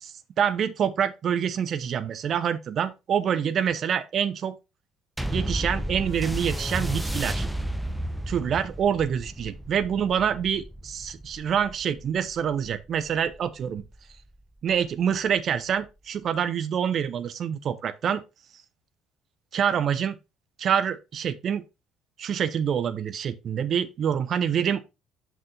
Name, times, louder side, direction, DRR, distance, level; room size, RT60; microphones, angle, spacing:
voice 1, 0.4-4.6 5.3-7.5 8.3-13.8 14.6-18.2 19.5-20.1 20.6-21.6 22.2-24.8, right 8 dB, 45° right, 0.6 m, -26 dB
sound 1, 5.2-13.9 14.7-14.8, right 1 dB, 5° right, 0.8 m, -32 dB
6.1 x 4.6 x 4.1 m
figure-of-eight pair, 55°, 0 cm